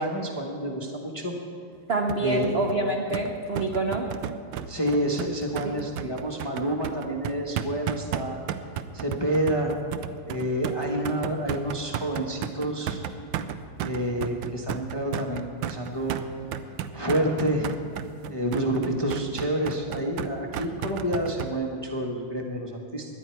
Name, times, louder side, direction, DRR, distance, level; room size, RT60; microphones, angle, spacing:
voice 1, 0.0-1.3 2.2-2.5 4.7-8.4 8.9-9.8 10.3-13.0 13.8-16.2 16.9-17.8 18.3-23.1, right 1 dB, 20° left, 0 dB, 0.8 m, -28 dB
voice 2, 1.9-4.1 5.6-5.8, right 2 dB, 55° right, 1 dB, 0.7 m, -27 dB
sound 1, 2.1-21.5, right 9 dB, 75° right, 1.2 m, -34 dB
18.0 x 11.0 x 4.6 m, 2.2 s
omnidirectional pair, 2.4 m